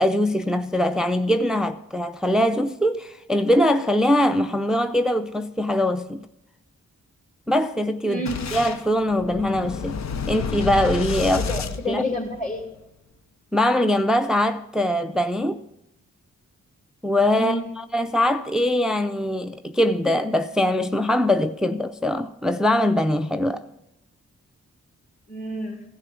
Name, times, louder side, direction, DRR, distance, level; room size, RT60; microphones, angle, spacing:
voice 1, 0.0-6.2 7.5-8.2 8.5-10.0 10.3-11.5 11.9-12.0 13.5-15.6 17.0-23.7, left 1 dB, ahead, 0.5 m, -22 dB
voice 2, 8.0-8.5 11.3-12.7 17.3-17.7 25.3-25.8, left 1 dB, 25° left, 2.6 m, -29 dB
Boom, 8.3-12.6, left 6 dB, 55° left, 0.7 m, -30 dB
15.0 x 6.6 x 6.2 m
supercardioid pair, 40°, 32 cm